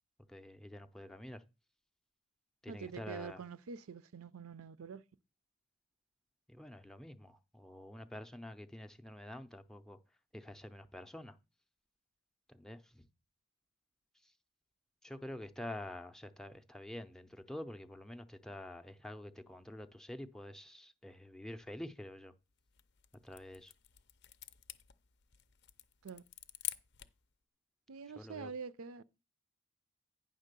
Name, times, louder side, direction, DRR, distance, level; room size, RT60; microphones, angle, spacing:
voice 1, 0.3-1.4 2.6-3.4 6.5-10.0 10.3-11.4 12.5-13.1 14.2-14.3 15.0-22.3 23.2-23.7 28.1-28.5, left 1 dB, ahead, 0.5 m, -47 dB
voice 2, 2.7-5.0 26.0-26.2 27.9-29.0, right 5 dB, 75° right, 0.5 m, -46 dB
sound 1, 22.6-27.3, left 13 dB, 50° left, 0.5 m, -47 dB
9.7 x 3.6 x 6.7 m
head